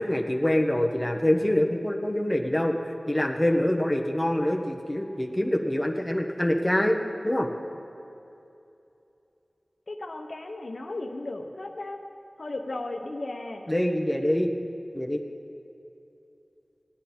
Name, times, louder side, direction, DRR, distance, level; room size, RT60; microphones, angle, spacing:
voice 1, 0.0-2.8 3.1-7.0 7.2-7.5 13.7-14.5 14.9-15.2, left 1 dB, 15° left, 2 dB, 1.2 m, -25 dB
voice 2, 9.9-12.0 12.4-13.7, left 2 dB, 80° left, 3 dB, 0.9 m, -35 dB
17.0 x 10.0 x 4.4 m, 2.7 s
wide cardioid pair, 40°, 0 cm